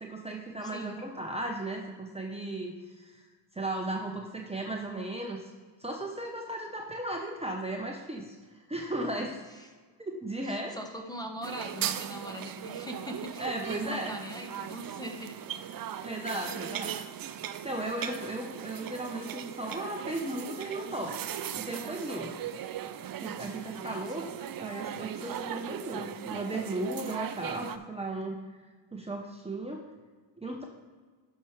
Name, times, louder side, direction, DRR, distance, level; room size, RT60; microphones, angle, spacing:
voice 1, 0.0-3.2 3.5-5.5 5.8-9.4 10.0-10.8 13.4-14.1 16.0-16.9 17.6-22.4 23.2-28.4 28.9-29.9 30.4-30.6, right 1 dB, 15° right, 0 dB, 1.0 m, -36 dB
voice 2, 0.6-1.0 9.6-9.7 10.4-15.5 23.8-24.1, equal, 10° left, 3 dB, 1.3 m, -41 dB
sound 1, 11.4-27.8, right 10 dB, 45° right, 0.6 m, -38 dB
11.0 x 5.9 x 3.3 m, 1.4 s
supercardioid pair, 55°, 47 cm